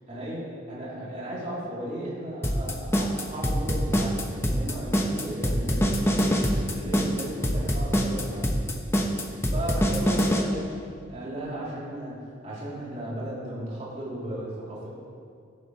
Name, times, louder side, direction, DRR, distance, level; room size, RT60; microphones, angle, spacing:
voice 1, 0.1-6.4 6.7-8.6 9.5-10.7 11.1-14.9, right 1 dB, 40° right, -8 dB, 3.5 m, -35 dB
sound 1, 2.4-10.4, equal, 15° left, 0.9 m, -24 dB
14.5 x 12.0 x 3.3 m, 2.3 s
head